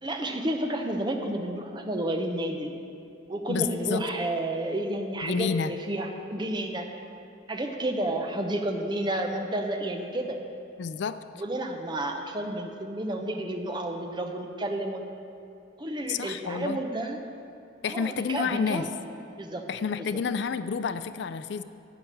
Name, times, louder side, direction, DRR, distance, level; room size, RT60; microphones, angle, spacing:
voice 1, 0.0-2.7 3.3-6.9 7.5-10.4 11.4-15.0 15.8-17.2 17.8-19.0 19.4-19.6, right 1 dB, 25° right, 4 dB, 0.8 m, -31 dB
voice 2, 3.5-4.0 5.2-5.7 10.8-11.2 16.1-16.8 17.8-18.9 19.7-21.6, left 6 dB, 60° left, 13 dB, 0.3 m, -29 dB
12.0 x 5.8 x 8.4 m, 2.7 s
head